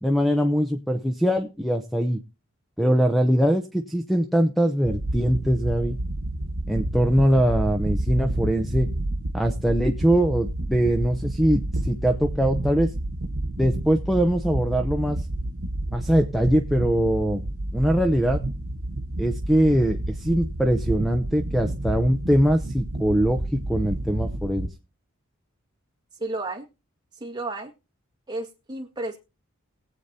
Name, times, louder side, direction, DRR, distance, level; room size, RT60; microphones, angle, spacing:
voice 1, 0.0-2.2 2.8-6.0 6.7-8.9 9.3-12.9 13.6-15.3 15.9-18.4 19.2-24.7, equal, ahead, 6 dB, 0.6 m, -22 dB
sound 1, 4.8-24.7, right 1 dB, 70° right, 1.1 m, -30 dB
voice 2, 26.2-26.7 27.2-27.7 28.3-29.2, right 2 dB, 20° right, 1 dB, 1.7 m, -32 dB
21.0 x 8.1 x 2.7 m, 0.29 s
head